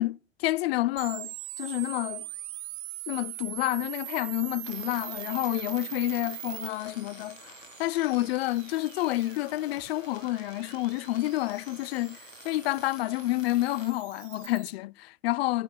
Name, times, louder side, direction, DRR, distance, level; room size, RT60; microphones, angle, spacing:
voice 1, 0.0-2.3 3.1-15.6, left 17 dB, 50° left, 0.5 m, -29 dB
sound 1, 1.0-14.7, right 18 dB, 35° right, 0.9 m, -42 dB
sound 2, 4.6-13.9, left 5 dB, 80° left, 1.9 m, -51 dB
9.6 x 5.6 x 6.5 m
figure-of-eight pair, 95°, 38 cm